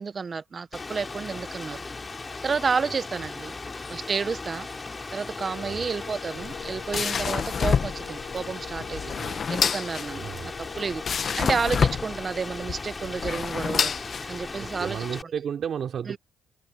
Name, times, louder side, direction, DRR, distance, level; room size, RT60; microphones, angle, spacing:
voice 1, 0.0-1.8 2.4-3.6 3.9-4.7 5.1-13.9 14.2-15.3 16.1-16.2, right 5 dB, 40° right, 0.8 m, -31 dB
Rain, 0.7-15.2, left 3 dB, 25° left, 2.9 m, -37 dB
Wind instrument woodwind instrument, 5.4-12.1, left 12 dB, 90° left, 2.0 m, -46 dB
sound 1, 6.3-14.7, left 6 dB, 50° left, 1.0 m, -28 dB
voice 2, 10.1-10.5 14.6-16.2, right 8 dB, 60° right, 2.9 m, -33 dB
cardioid pair, 90°, 0 cm